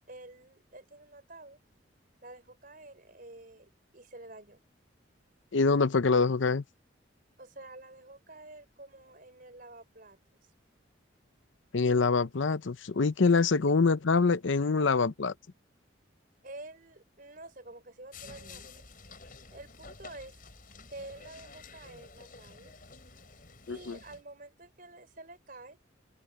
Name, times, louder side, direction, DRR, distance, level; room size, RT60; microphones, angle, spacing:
voice 1, 0.1-1.6 2.2-4.6 7.4-10.2 16.4-18.8 19.5-20.4 20.9-22.7 23.7-25.8, right 2 dB, 45° right, 5.0 m, -49 dB
voice 2, 5.5-6.6 11.7-15.3 23.7-24.0, left 4 dB, 75° left, 0.7 m, -25 dB
sound 1, 18.1-24.2, left 4 dB, 45° left, 5.1 m, -50 dB
head